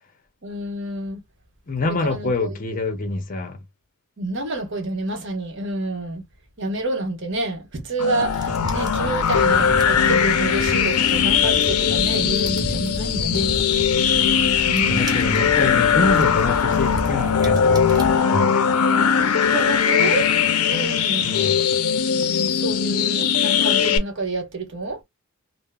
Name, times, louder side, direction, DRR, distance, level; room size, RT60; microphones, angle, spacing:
voice 1, 0.4-1.2 1.8-2.6 4.2-6.2 6.6-13.6 14.7-15.5 19.4-20.3 20.7-21.5 22.5-25.0, right 2 dB, 55° right, 1.0 m, -28 dB
voice 2, 1.7-3.6 14.8-18.0 18.3-18.6 21.2-21.6, left 2 dB, 35° left, 0.6 m, -26 dB
sound 1, 8.0-24.0, left 7 dB, 85° left, 0.5 m, -20 dB
sound 2, 8.2-18.2, right 1 dB, 20° right, 0.4 m, -32 dB
3.6 x 2.0 x 2.2 m
head